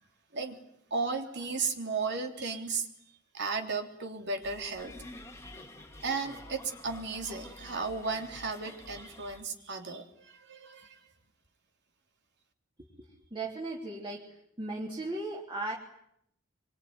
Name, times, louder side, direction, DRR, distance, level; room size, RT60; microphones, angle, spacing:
voice 1, 0.9-2.9 3.3-4.9 6.0-11.0, right 4 dB, 60° right, 4 dB, 3.3 m, -34 dB
sound 1, 4.4-9.4, left 1 dB, 15° left, 1.9 m, -49 dB
voice 2, 13.3-15.7, right 2 dB, 25° right, -2 dB, 3.2 m, -37 dB
25.5 x 24.0 x 9.6 m, 0.75 s
head